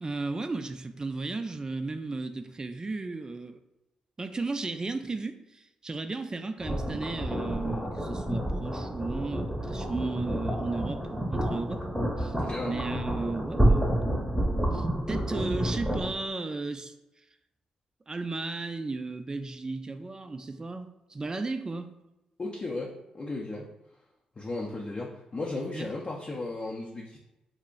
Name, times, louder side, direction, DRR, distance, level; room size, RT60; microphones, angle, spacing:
voice 1, 0.0-3.6 4.2-11.8 12.2-12.3 12.6-14.0 14.7-16.9 18.1-21.9 25.7-25.9, right 3 dB, 30° right, 9 dB, 0.3 m, -35 dB
sound 1, 6.6-16.1, right 1 dB, ahead, 0.7 m, -29 dB
voice 2, 12.4-12.8 22.4-23.7 24.4-27.2, left 2 dB, 35° left, -2 dB, 0.5 m, -35 dB
2.4 x 2.0 x 3.7 m, 0.92 s
supercardioid pair, 60°, 2 cm